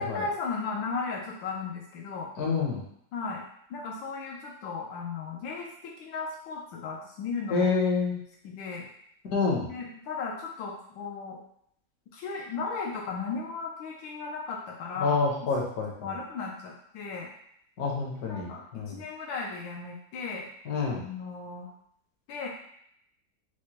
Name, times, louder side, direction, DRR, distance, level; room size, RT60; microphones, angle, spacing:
voice 1, 0.0-2.3 3.1-3.4 3.7-7.7 8.1-8.9 9.7-11.4 12.1-15.5 16.0-17.3 18.2-20.5 21.0-21.7 22.3-22.5, left 4 dB, 80° left, -2 dB, 1.3 m, -36 dB
voice 2, 2.4-2.8 7.5-8.2 9.3-9.7 15.0-16.1 17.8-19.0 20.7-21.0, left 4 dB, 60° left, -1 dB, 1.2 m, -27 dB
4.7 x 2.1 x 2.8 m, 0.71 s
omnidirectional pair, 2.1 m